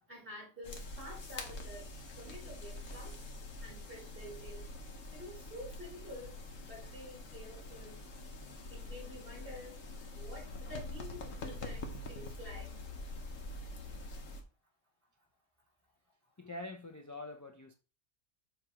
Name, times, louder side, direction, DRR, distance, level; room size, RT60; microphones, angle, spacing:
voice 1, 0.1-1.8 2.2-3.2 3.6-4.7 5.1-8.0 8.7-9.8 10.1-12.7, equal, 45° right, 3.9 m, -49 dB
sound 1, 0.6-14.4, left 2 dB, 85° left, 1.6 m, -45 dB
voice 2, 16.4-17.7, left 2 dB, 25° left, 0.4 m, -45 dB
7.1 x 3.4 x 4.9 m
omnidirectional pair, 1.3 m